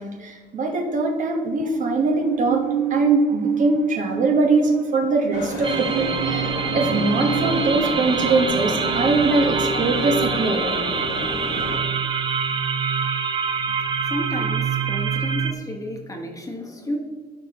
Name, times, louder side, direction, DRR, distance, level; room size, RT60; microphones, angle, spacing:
voice 1, 0.0-10.9 11.5-11.6, right 3 dB, 50° right, 2 dB, 1.2 m, -22 dB
Musical instrument, 1.6-8.4, right 12 dB, 80° right, 0.4 m, -30 dB
sound 1, 5.3-11.8, left 2 dB, 75° left, 1.7 m, -31 dB
sound 2, 5.6-15.5, right 6 dB, 30° right, 0.7 m, -25 dB
voice 2, 14.0-17.0, left 1 dB, 20° left, 2 dB, 1.2 m, -32 dB
13.0 x 5.1 x 3.0 m, 1.5 s
cardioid pair, 110°, 17 cm